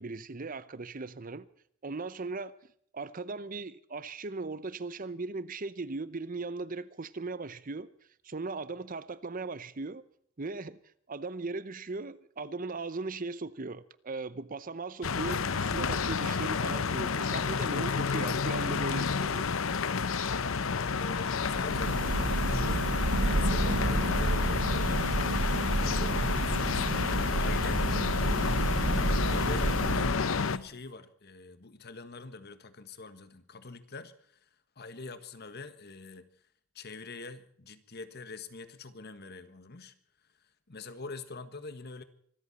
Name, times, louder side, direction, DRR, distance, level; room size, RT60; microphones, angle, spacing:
voice 1, 0.0-1.4 1.8-2.5 2.9-7.9 8.2-10.0 10.4-10.8 11.1-19.5, right 3 dB, 40° right, 0.8 m, -38 dB
sound 1, 15.0-30.6, left 5 dB, 75° left, 0.8 m, -30 dB
voice 2, 17.9-18.9 20.4-22.9 23.2-25.1 25.8-27.9 29.3-34.5 34.8-36.2 36.7-39.9 40.7-42.0, left 3 dB, 50° left, 1.6 m, -44 dB
sound 2, 21.4-30.5, right 2 dB, 65° right, 1.2 m, -30 dB
25.0 x 13.5 x 4.3 m
head